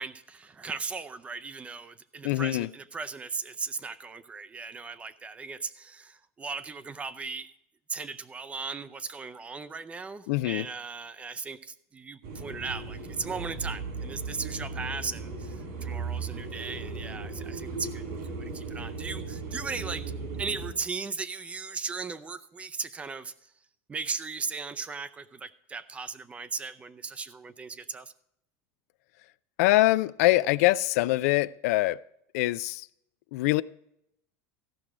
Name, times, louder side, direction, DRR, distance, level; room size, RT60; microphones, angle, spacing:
voice 1, 0.0-7.5 7.9-20.1 20.4-23.5 23.9-28.1, right 4 dB, 15° right, 0.5 m, -37 dB
voice 2, 2.2-2.7 10.3-10.7 29.6-32.0 32.3-32.9 33.3-33.6, left 18 dB, 75° left, 0.4 m, -24 dB
sound 1, 12.2-20.7, right 4 dB, 80° right, 3.4 m, -37 dB
14.5 x 6.0 x 4.9 m
supercardioid pair, 150°, 8 cm